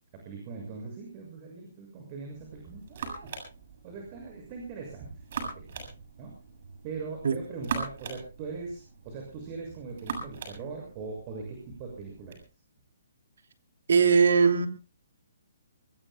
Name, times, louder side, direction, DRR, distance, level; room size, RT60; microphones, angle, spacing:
voice 1, 0.1-3.3 3.8-5.9 6.2-6.3 6.8-12.4, right 4 dB, 30° right, 1 dB, 6.9 m, -41 dB
sound 1, 2.3-12.4, right 5 dB, 50° right, 7.5 m, -41 dB
voice 2, 13.9-14.7, right 5 dB, 70° right, 6 dB, 2.8 m, -20 dB
25.0 x 20.5 x 2.3 m, 0.33 s
hypercardioid pair, 155°, 0 cm